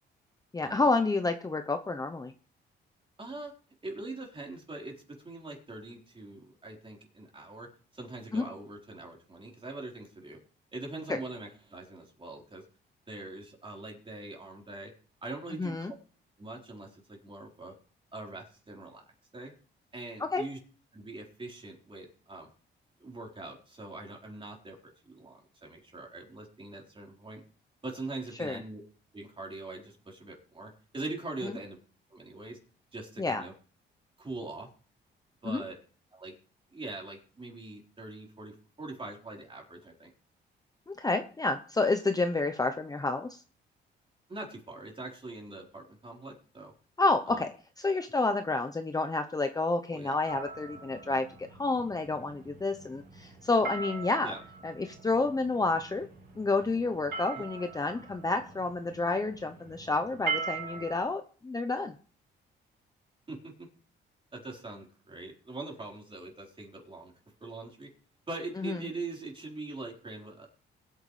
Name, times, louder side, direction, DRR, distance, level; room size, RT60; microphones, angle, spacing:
voice 1, 0.5-2.3 8.3-8.4 11.1-11.2 15.6-15.9 20.2-20.4 28.4-28.6 31.4-31.5 33.2-33.4 35.4-35.6 40.9-43.4 47.0-47.5 47.8-54.3 54.6-56.1 56.3-61.9 68.6-68.8, left 3 dB, 20° left, 7 dB, 0.8 m, -29 dB
voice 2, 3.2-3.5 3.8-7.7 7.9-10.4 10.7-12.6 13.1-14.9 15.2-16.0 16.4-17.7 18.1-19.0 19.3-19.5 19.9-20.6 20.9-22.5 23.0-27.4 27.8-28.8 29.1-31.8 32.1-32.6 32.9-33.5 34.2-34.7 35.4-35.8 36.1-36.3 36.7-40.1 44.3-46.7 47.3-47.4 49.9-50.2 54.2-54.4 57.3-57.4 63.3-63.7 64.3-67.1 67.4-67.9 68.3-70.5, right 2 dB, 25° right, 0 dB, 4.3 m, -42 dB
sound 1, 50.3-61.0, right 5 dB, 55° right, 4.8 m, -41 dB
21.0 x 9.1 x 3.3 m, 0.42 s
cardioid pair, 90°, 20 cm